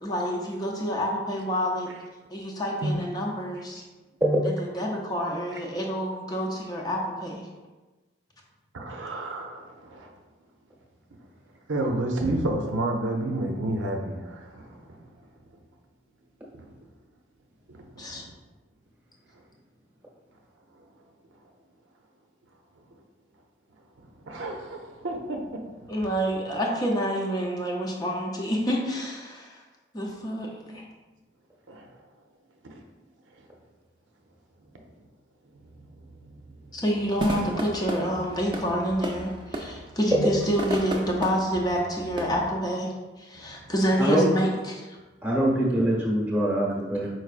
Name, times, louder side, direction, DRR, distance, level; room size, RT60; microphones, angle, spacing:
voice 1, 0.0-1.9 2.3-3.8 4.6-7.5 18.0-18.2 25.9-29.6 29.9-30.8 36.7-42.9 43.2-45.0, equal, 20° left, -1 dB, 0.5 m, -28 dB
voice 2, 8.7-10.1 11.7-15.0 16.5-16.7 17.7-18.2 20.7-20.9 24.0-25.9 30.7-30.8 31.7-31.9 32.6-32.8 35.7-35.9 36.1-36.8 43.3-43.5, right 1 dB, 85° right, 2 dB, 0.6 m, -31 dB
sound 1, 37.2-42.5, right 1 dB, 25° right, 0.4 m, -34 dB
voice 3, 45.2-47.1, right 1 dB, 10° right, -4 dB, 0.9 m, -23 dB
4.6 x 4.5 x 2.4 m, 1.2 s
head